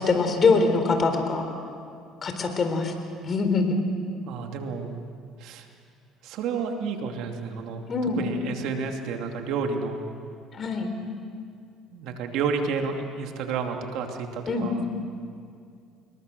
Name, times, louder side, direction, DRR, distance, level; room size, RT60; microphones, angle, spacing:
voice 1, 0.0-1.4 2.2-2.9 3.2-3.7 7.9-8.2 10.5-10.9 14.5-14.7, left 4 dB, 40° left, 6 dB, 3.9 m, -23 dB
voice 2, 4.3-5.0 5.4-5.7 6.2-10.0 11.9-15.0, right 5 dB, 70° right, 4 dB, 2.6 m, -31 dB
26.5 x 22.0 x 6.8 m, 2.3 s
supercardioid pair, 90°, 0 cm